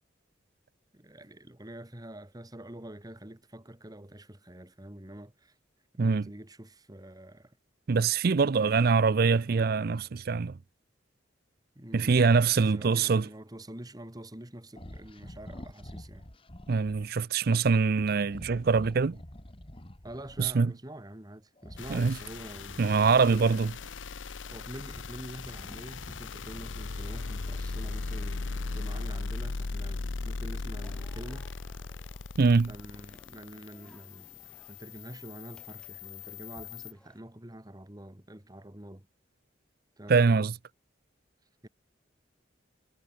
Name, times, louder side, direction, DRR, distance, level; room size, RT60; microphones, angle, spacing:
voice 1, 0.9-5.5 5.9-7.6 8.6-8.9 11.8-16.3 20.0-23.6 24.5-31.5 32.7-39.1 40.0-40.5 41.6-41.7, right 1 dB, 20° right, 1.9 m, -46 dB
voice 2, 6.0-6.3 7.9-10.6 11.9-13.3 16.7-19.2 20.4-20.7 21.9-22.2 22.8-23.7 32.4-32.7 40.1-40.5, right 4 dB, 55° right, 0.5 m, -24 dB
sound 1, 14.7-17.1 18.2-20.6 21.6-23.9 24.4-26.8, left 1 dB, 30° left, 2.0 m, -48 dB
sound 2, 21.8-36.9, left 3 dB, 90° left, 0.9 m, -38 dB
sound 3, 30.8-37.2, equal, 5° left, 3.4 m, -60 dB
head